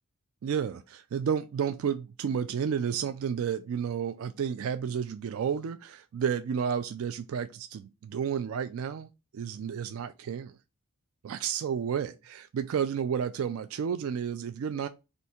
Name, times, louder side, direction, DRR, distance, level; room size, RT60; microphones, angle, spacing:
voice 1, 0.4-10.6 11.2-14.9, right 7 dB, 70° right, 0.3 m, -31 dB
3.4 x 2.7 x 4.2 m
head